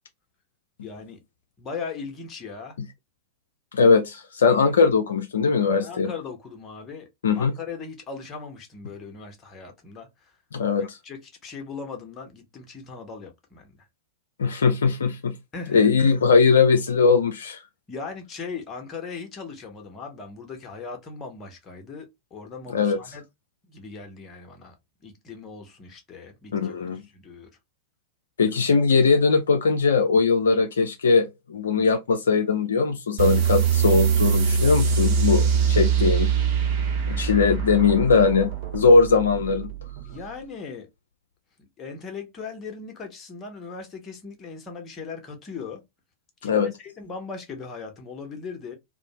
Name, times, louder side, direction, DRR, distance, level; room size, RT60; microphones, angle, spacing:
voice 1, 0.8-1.2 1.6-2.8 5.8-7.1 7.4-10.3 10.8-13.8 15.5-15.9 17.9-23.2 23.7-24.7 25.0-27.5 28.5-28.6 40.0-40.9 41.8-45.8 46.4-48.8, left 5 dB, 25° left, 0.8 m, -38 dB
voice 2, 3.7-6.1 7.2-7.5 10.5-11.0 14.4-15.3 15.7-17.6 22.7-23.0 26.5-27.0 28.4-36.3 37.1-39.7 46.4-46.7, left 4 dB, 65° left, 0.3 m, -20 dB
sound 1, 33.2-40.3, right 7 dB, 50° right, 0.8 m, -23 dB
2.5 x 2.0 x 2.8 m
figure-of-eight pair, 90°, 0 cm